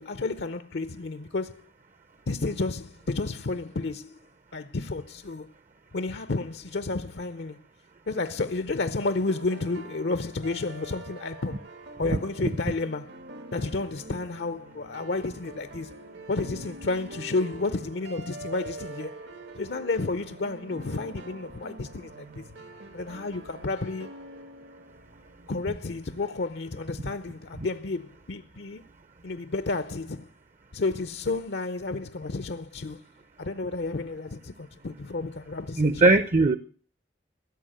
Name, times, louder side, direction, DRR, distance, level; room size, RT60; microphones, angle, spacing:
voice 1, 0.0-1.6 2.3-4.2 4.5-5.5 5.9-7.6 8.1-11.6 12.0-13.1 13.5-15.9 16.3-19.2 19.6-22.4 22.9-24.1 25.5-28.8 29.2-30.3 30.7-33.0 33.4-36.1, left 3 dB, 75° left, 0.7 m, -31 dB
sound 1, 9.0-25.9, right 2 dB, 80° right, 1.6 m, -45 dB
voice 2, 12.1-12.5 35.8-36.6, right 2 dB, 40° right, 0.6 m, -21 dB
16.0 x 7.1 x 8.9 m
head